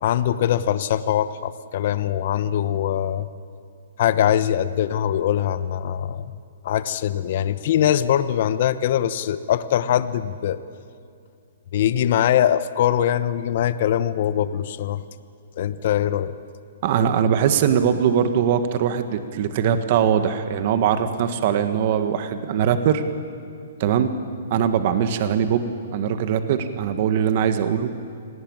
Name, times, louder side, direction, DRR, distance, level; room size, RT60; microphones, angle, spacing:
voice 1, 0.0-3.3 4.0-6.3 6.6-10.6 11.7-15.0 15.6-16.3, left 10 dB, 50° left, 13 dB, 1.0 m, -22 dB
voice 2, 16.8-23.0 23.8-24.1 24.5-27.9, right 8 dB, 45° right, 9 dB, 1.6 m, -21 dB
26.5 x 18.5 x 8.9 m, 2.4 s
hypercardioid pair, 155°, 0 cm